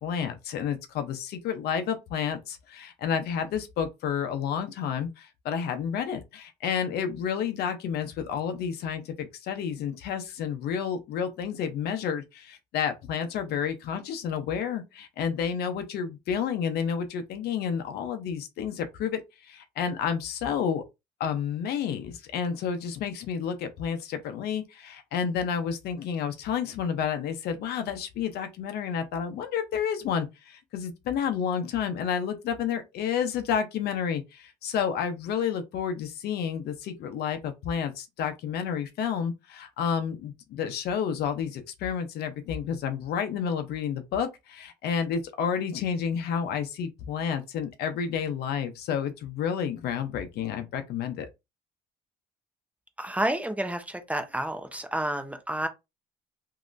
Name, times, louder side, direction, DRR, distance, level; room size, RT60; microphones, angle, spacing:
voice 1, 0.0-20.8 21.2-51.3, left 7 dB, 75° left, 0.7 m, -30 dB
voice 2, 53.0-55.7, right 1 dB, 10° right, 0.6 m, -30 dB
3.1 x 2.8 x 2.5 m
cardioid pair, 110°, 17 cm